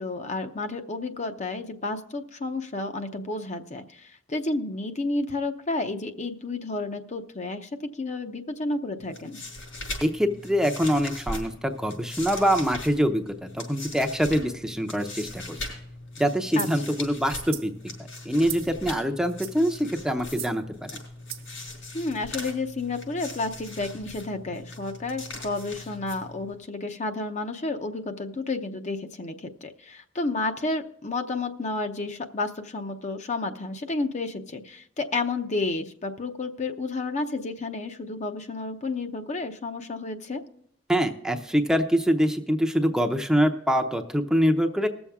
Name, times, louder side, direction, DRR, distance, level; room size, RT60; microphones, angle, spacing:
voice 1, 0.0-9.4 16.6-17.0 21.9-40.4, left 3 dB, 40° left, 7 dB, 0.7 m, -31 dB
sound 1, 9.0-26.6, left 2 dB, 80° left, 5.4 m, -40 dB
voice 2, 10.0-15.6 16.2-17.7 18.3-20.6 40.9-44.9, equal, 5° right, 4 dB, 0.6 m, -24 dB
sound 2, 16.6-16.8 17.4-17.7 18.5-18.8 19.2-19.7 20.3-20.6 21.3-21.5, right 12 dB, 50° right, 0.9 m, -38 dB
20.0 x 7.1 x 3.6 m, 0.69 s
head